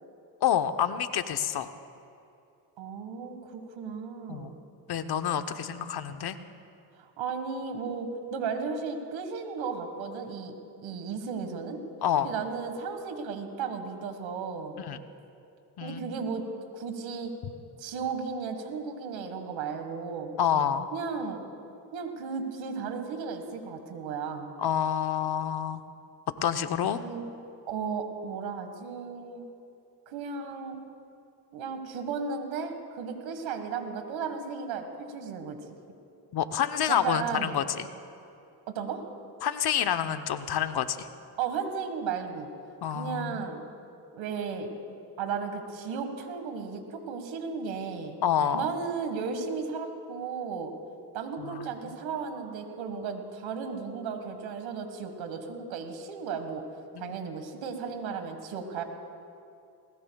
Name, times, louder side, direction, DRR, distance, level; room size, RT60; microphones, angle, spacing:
voice 1, 0.4-1.7 4.3-4.5 4.9-6.4 12.0-12.3 14.8-15.0 15.8-16.2 20.4-20.9 24.6-25.8 26.4-27.0 36.3-37.9 39.4-41.1 42.8-43.4 48.2-48.7 51.4-51.7 57.0-57.2, left 9 dB, 55° left, 9 dB, 0.9 m, -28 dB
voice 2, 2.8-4.5 7.0-10.5 10.8-11.8 12.2-14.8 15.8-16.5 16.7-17.3 17.8-20.4 20.9-21.4 21.9-24.5 27.0-27.3 27.6-29.4 30.1-30.8 31.5-35.6 36.9-37.6 38.7-39.0 41.4-42.5 42.9-43.6 44.1-44.7 45.2-48.1 48.5-50.7 51.1-56.6 57.0-58.8, right 5 dB, 80° right, 6 dB, 1.7 m, -35 dB
20.0 x 19.0 x 2.3 m, 2.6 s
supercardioid pair, 70°, 45 cm